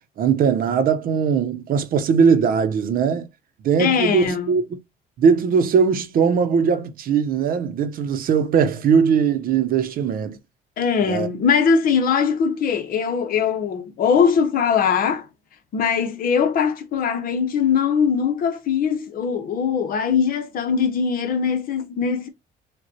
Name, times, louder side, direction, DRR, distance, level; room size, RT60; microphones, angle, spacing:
voice 1, 0.2-3.3 3.6-4.8 5.2-10.4 11.0-11.3, right 6 dB, 60° right, 0.8 m, -20 dB
voice 2, 3.8-4.6 10.8-15.3 15.7-22.3, left 6 dB, 55° left, 0.9 m, -21 dB
6.5 x 2.3 x 2.7 m
cardioid pair, 110°, 17 cm